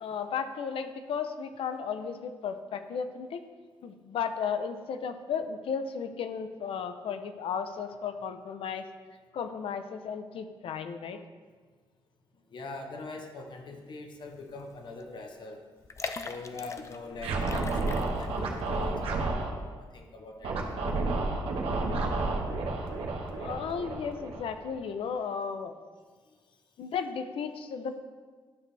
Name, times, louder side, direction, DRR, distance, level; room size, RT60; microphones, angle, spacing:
voice 1, 0.0-3.4 3.8-8.9 9.3-11.2 23.4-25.7 26.8-28.0, left 6 dB, 80° left, 9 dB, 0.6 m, -34 dB
voice 2, 12.5-15.6 16.2-21.1 23.1-23.3 26.3-26.4, left 3 dB, 55° left, 3 dB, 1.1 m, -43 dB
sound 1, 14.5-14.7 15.0-15.1 15.8-17.0 17.4-18.5 18.8-18.9, left 4 dB, 30° left, 0.5 m, -39 dB
Scratching (performance technique), 17.2-19.5 20.4-24.7, right 3 dB, 85° right, 1.2 m, -31 dB
11.5 x 6.1 x 3.4 m, 1.5 s
cardioid pair, 120°, 9 cm